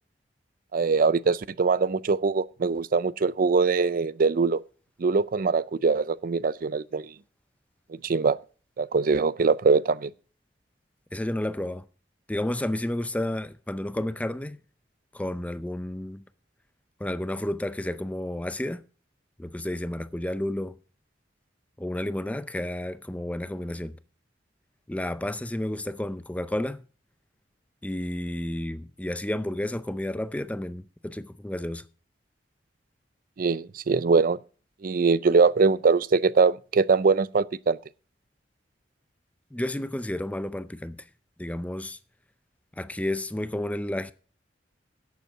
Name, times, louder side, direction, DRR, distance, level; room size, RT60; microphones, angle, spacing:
voice 1, 0.7-4.6 5.0-7.1 7.9-8.4 8.8-10.1 33.4-34.4 34.8-37.8, right 4 dB, 50° right, 0.4 m, -22 dB
voice 2, 11.1-11.9 12.3-14.6 15.1-16.2 17.0-18.8 19.4-20.8 21.8-24.0 24.9-26.8 27.8-31.8 39.5-41.0 41.4-42.0 42.8-44.1, left 1 dB, 10° left, 0.5 m, -31 dB
11.0 x 8.2 x 5.9 m
head